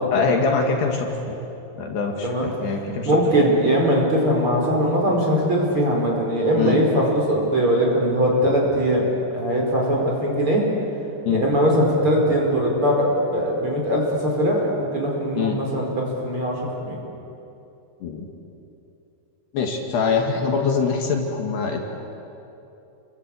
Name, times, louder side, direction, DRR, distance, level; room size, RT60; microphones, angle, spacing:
voice 1, 0.1-1.4 1.8-3.2 6.6-6.8 11.3-11.4 15.4-15.6 18.0-18.3 19.5-21.8, left 5 dB, 65° left, 2 dB, 4.1 m, -23 dB
voice 2, 3.0-10.6 11.3-17.0, equal, 30° right, -1 dB, 5.3 m, -21 dB
29.0 x 24.0 x 8.5 m, 2.8 s
omnidirectional pair, 5.3 m